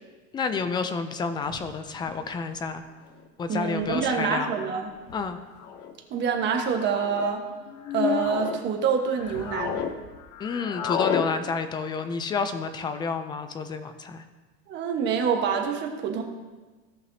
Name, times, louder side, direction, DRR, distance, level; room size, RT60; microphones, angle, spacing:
voice 1, 0.3-2.8 3.4-4.5 5.1-5.4 10.4-14.2, left 5 dB, 15° left, 9 dB, 0.3 m, -30 dB
sound 1, 1.4-2.3 2.5-2.7 3.0-3.2 3.5-3.6 3.8-4.0 4.6-5.7 6.4-6.5 6.8-6.9 7.1-8.3 9.2-10.2, left 9 dB, 80° left, 1.5 m, -35 dB
sound 2, 3.2-3.3 4.3-4.6 5.5-5.9 6.8-7.3 7.9-8.6 9.0-9.9 10.2-11.3, left 8 dB, 50° left, 0.8 m, -32 dB
voice 2, 3.5-4.9 6.1-7.4 7.9-9.8 14.7-16.2, right 6 dB, 35° right, 2 dB, 1.2 m, -26 dB
17.0 x 5.8 x 2.7 m, 1.3 s
cardioid pair, 160°, 33 cm